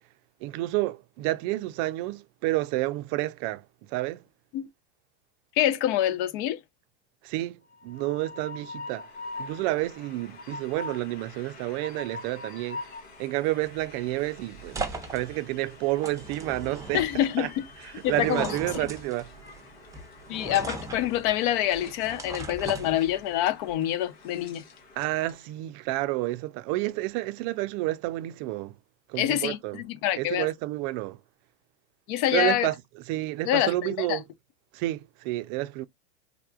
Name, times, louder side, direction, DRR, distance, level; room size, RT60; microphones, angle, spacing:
voice 1, 0.4-3.6 3.9-4.2 7.2-9.1 9.4-12.9 13.2-14.8 15.1-17.5 18.1-19.3 25.0-28.7 29.1-29.8 30.2-31.2 32.3-32.7 33.1-34.2 34.7-35.8, right 18 dB, 50° right, 0.4 m, -30 dB
voice 2, 5.6-6.6 16.9-17.6 18.0-18.5 18.8-18.9 20.3-24.6 29.2-30.5 32.1-32.7 33.5-34.2, left 12 dB, 55° left, 0.5 m, -26 dB
Train, 7.7-25.5, left 3 dB, 85° left, 1.4 m, -45 dB
sound 1, 13.6-23.5, right 3 dB, 10° right, 0.7 m, -39 dB
3.4 x 2.4 x 2.3 m
supercardioid pair, 120°, 32 cm